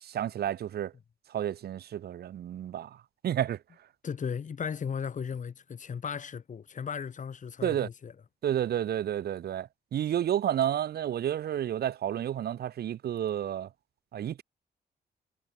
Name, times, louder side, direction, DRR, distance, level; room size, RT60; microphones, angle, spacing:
voice 1, 0.0-0.9 1.3-2.9 3.2-3.6 7.6-7.9 8.4-13.7 14.1-14.4, right 10 dB, 70° right, 1.0 m, -30 dB
voice 2, 4.0-8.1, left 6 dB, 50° left, 5.3 m, -36 dB
wide cardioid pair, 130°, 17 cm